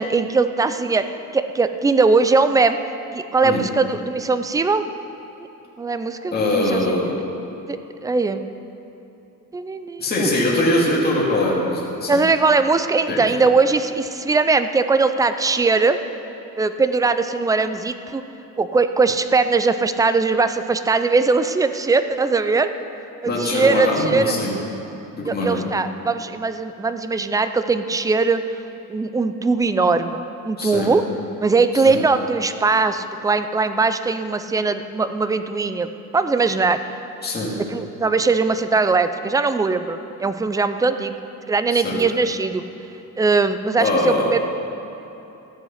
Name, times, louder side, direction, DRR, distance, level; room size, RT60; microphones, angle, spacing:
voice 1, 0.0-2.8 3.1-4.9 5.8-7.0 7.7-8.4 9.5-10.3 12.1-16.0 16.6-18.2 18.6-22.7 23.2-24.4 25.3-28.4 28.9-31.0 31.4-36.9 37.6-41.2 41.5-42.6 43.2-44.4, right 4 dB, 10° right, 10 dB, 0.3 m, -20 dB
voice 2, 6.3-7.1 10.0-12.2 13.1-13.2 23.2-24.6 25.1-25.6 30.6-30.9 31.7-32.0 37.2-37.5 41.7-42.0 43.8-44.3, left 1 dB, 30° left, -5 dB, 2.2 m, -22 dB
14.0 x 7.9 x 5.7 m, 3.0 s
cardioid pair, 145°, 34 cm